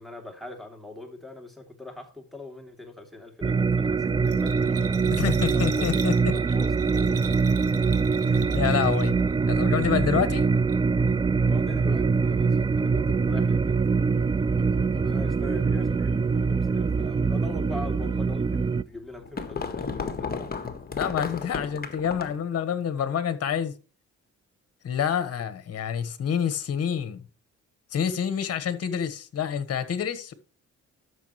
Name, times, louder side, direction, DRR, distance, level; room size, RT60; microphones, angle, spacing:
voice 1, 0.0-5.0 5.5-7.3 7.6-7.7 11.3-20.3, left 2 dB, ahead, 3.0 m, -42 dB
sound 1, 3.4-18.8, right 5 dB, 15° right, 0.4 m, -24 dB
Bell, 4.2-9.3 9.6-10.4 10.7-10.8, right 7 dB, 50° right, 1.8 m, -41 dB
voice 2, 5.1-6.1 8.2-9.2 9.5-10.5 20.9-23.7 24.8-27.2 27.9-30.3, left 8 dB, 55° left, 1.4 m, -27 dB
sound 2, 18.9-22.5, left 5 dB, 30° left, 1.6 m, -33 dB
13.0 x 6.4 x 3.2 m
cardioid pair, 90°, 30 cm